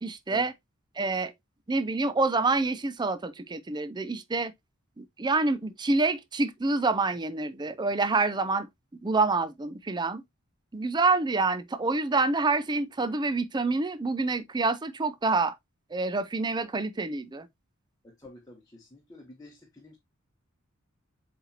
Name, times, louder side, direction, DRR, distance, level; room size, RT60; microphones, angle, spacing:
voice 1, 0.0-0.5 1.0-1.3 1.7-4.5 5.0-8.7 9.0-10.2 10.7-15.5 15.9-17.5, right 3 dB, 20° right, 0.5 m, -27 dB
voice 2, 18.0-20.0, left 1 dB, 20° left, 1.2 m, -49 dB
8.0 x 4.2 x 2.8 m
head